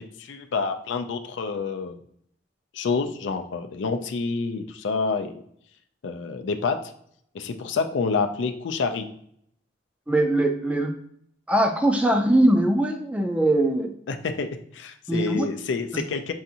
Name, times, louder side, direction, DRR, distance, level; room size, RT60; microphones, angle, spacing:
voice 1, 0.0-2.0 2.7-5.4 6.0-6.8 7.3-9.1 14.1-16.3, left 4 dB, 75° left, 7 dB, 0.4 m, -28 dB
voice 2, 10.1-10.9 11.5-13.9 15.1-15.5, right 1 dB, 5° right, 4 dB, 0.4 m, -21 dB
5.6 x 2.5 x 2.8 m, 0.67 s
head